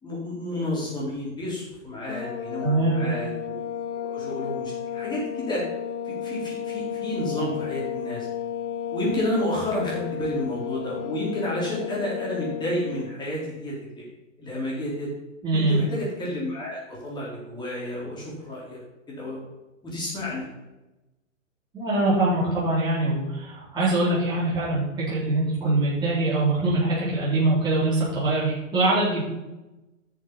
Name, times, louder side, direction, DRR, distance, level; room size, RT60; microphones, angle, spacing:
voice 1, 0.0-3.6 4.1-5.6 6.1-8.3 8.9-14.0 14.4-15.1 15.5-18.8 19.1-19.4 19.8-20.5, left 1 dB, 10° left, -5 dB, 3.9 m, -31 dB
sound 1, 2.1-13.1, left 9 dB, 60° left, 1.3 m, -33 dB
voice 2, 2.6-3.0 15.4-15.8 21.7-29.2, right 2 dB, 10° right, -9 dB, 3.9 m, -23 dB
10.0 x 6.8 x 5.7 m, 1.0 s
hypercardioid pair, 150°, 39 cm